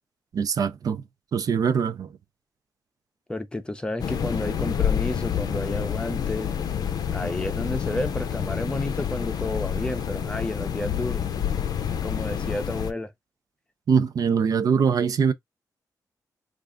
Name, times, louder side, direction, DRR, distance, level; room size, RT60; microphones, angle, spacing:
voice 1, 0.3-1.0 1.3-2.1 13.9-15.3, right 6 dB, 65° right, 0.5 m, -22 dB
voice 2, 3.3-6.5 7.1-11.2 12.0-13.1, left 1 dB, 15° left, 0.6 m, -31 dB
sound 1, 4.0-12.9, left 8 dB, 70° left, 0.5 m, -28 dB
3.3 x 2.4 x 3.7 m
wide cardioid pair, 140°, 7 cm